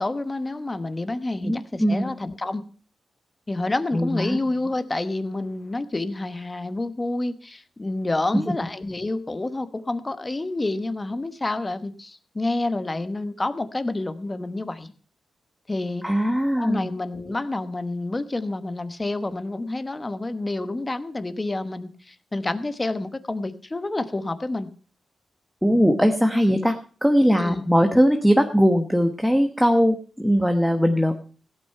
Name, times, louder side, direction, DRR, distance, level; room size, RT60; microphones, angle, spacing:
voice 1, 0.0-2.6 3.5-14.9 15.7-16.0 16.6-24.7 27.4-27.6, left 2 dB, 20° left, 11 dB, 1.1 m, -28 dB
voice 2, 1.4-2.1 3.9-4.4 16.0-16.9 25.6-26.8 27.0-31.1, equal, ahead, 5 dB, 1.1 m, -20 dB
16.0 x 8.8 x 5.6 m, 0.39 s
wide cardioid pair, 115°, 0 cm